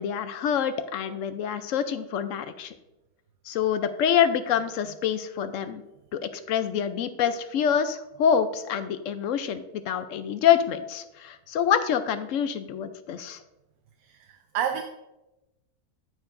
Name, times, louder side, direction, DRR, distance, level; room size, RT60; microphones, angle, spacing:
voice 1, 0.0-2.7 3.5-5.8 6.1-13.4, left 8 dB, 70° left, 11 dB, 0.9 m, -26 dB
voice 2, 14.0-14.8, right 9 dB, 75° right, 6 dB, 1.0 m, -31 dB
14.0 x 4.7 x 2.5 m, 0.96 s
omnidirectional pair, 1.5 m